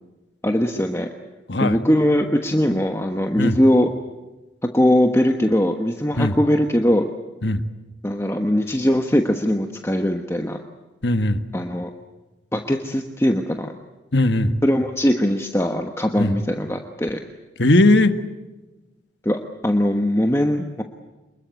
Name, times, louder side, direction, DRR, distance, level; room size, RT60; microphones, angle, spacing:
voice 1, 0.4-1.1 1.6-3.9 4.7-7.1 8.0-10.6 11.5-11.9 12.5-13.7 14.6-17.2 19.2-20.8, equal, 15° left, 4 dB, 1.2 m, -20 dB
voice 2, 11.0-11.4 14.1-14.5 16.2-16.3 17.6-18.2, left 2 dB, 65° left, 10 dB, 1.6 m, -18 dB
27.5 x 21.5 x 8.2 m, 1.1 s
head